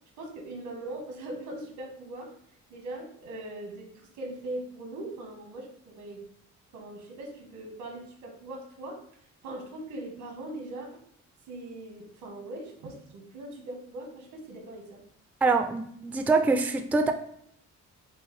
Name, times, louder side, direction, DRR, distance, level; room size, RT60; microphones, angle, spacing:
voice 1, 0.2-2.3 2.7-6.2 6.7-9.0 9.4-10.9 11.5-15.0, right 1 dB, 90° right, 1 dB, 1.2 m, -40 dB
voice 2, 15.4-17.1, right 3 dB, 5° right, 6 dB, 0.3 m, -24 dB
5.4 x 2.1 x 3.1 m, 0.67 s
cardioid pair, 90°, 30 cm